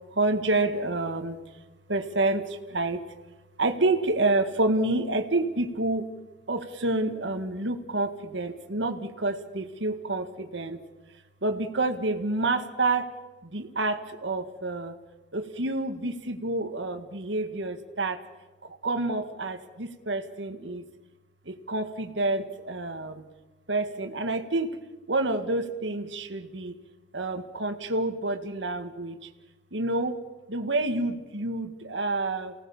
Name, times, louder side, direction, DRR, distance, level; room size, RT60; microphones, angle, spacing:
voice 1, 0.1-1.4 1.9-3.0 3.6-6.1 6.5-10.8 11.4-13.1 13.4-15.0 15.3-18.2 18.6-20.8 21.5-23.3 23.7-24.8 25.1-26.8 27.1-29.3 29.7-30.2 30.5-32.5, right 2 dB, 75° right, 7 dB, 1.9 m, -28 dB
29.0 x 18.5 x 7.2 m, 1.2 s
head